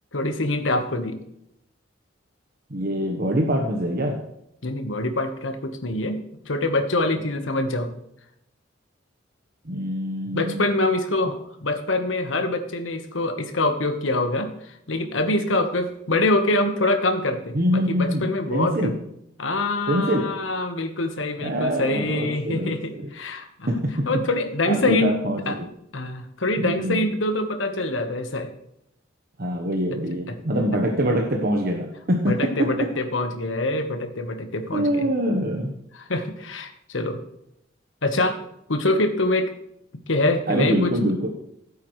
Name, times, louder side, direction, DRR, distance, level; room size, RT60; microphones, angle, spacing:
voice 1, 0.1-1.2 4.6-7.9 10.3-18.9 19.4-23.8 24.1-25.2 25.5-25.6 25.9-28.5 30.3-30.4 32.3-35.1 35.9-37.2 38.0-38.4 38.7-39.5 40.1-40.9, left 2 dB, 80° left, 7 dB, 1.3 m, -25 dB
voice 2, 2.7-4.2 9.6-10.7 11.2-11.3 15.5-15.6 17.5-19.0 19.9-20.3 21.4-23.0 23.7-24.2 24.7-25.4 26.6-27.1 29.4-32.9 34.7-35.7 40.5-41.3, equal, 50° right, 2 dB, 1.1 m, -24 dB
15.0 x 8.4 x 3.2 m, 0.78 s
head